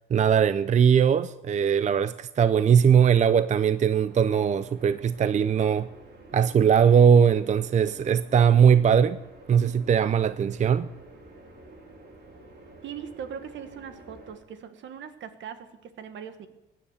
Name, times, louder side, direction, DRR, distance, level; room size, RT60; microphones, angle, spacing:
voice 1, 0.1-5.9 6.3-9.2 9.5-10.9, right 7 dB, 35° right, 0.5 m, -20 dB
sound 1, 4.0-14.3, right 2 dB, 55° right, 3.9 m, -50 dB
voice 2, 12.8-16.5, right 8 dB, 70° right, 1.5 m, -40 dB
17.5 x 10.0 x 7.1 m
cardioid pair, 90°, 20 cm